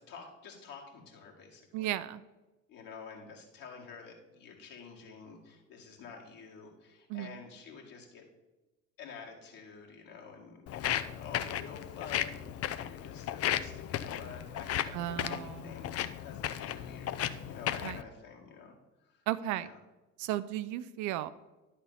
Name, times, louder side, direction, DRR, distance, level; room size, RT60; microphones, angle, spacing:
voice 1, 0.0-2.0 2.7-8.2 9.0-19.2 19.5-19.8, left 5 dB, 55° left, -1 dB, 2.3 m, -49 dB
voice 2, 1.7-2.2 7.1-7.4 14.9-15.7 17.8-18.0 19.3-19.7 20.2-21.3, right 14 dB, 50° right, 14 dB, 0.5 m, -35 dB
Walk footsteps, 10.7-18.0, left 11 dB, 40° left, 0.5 m, -35 dB
11.0 x 4.3 x 5.5 m, 1.1 s
hypercardioid pair, 60°, 39 cm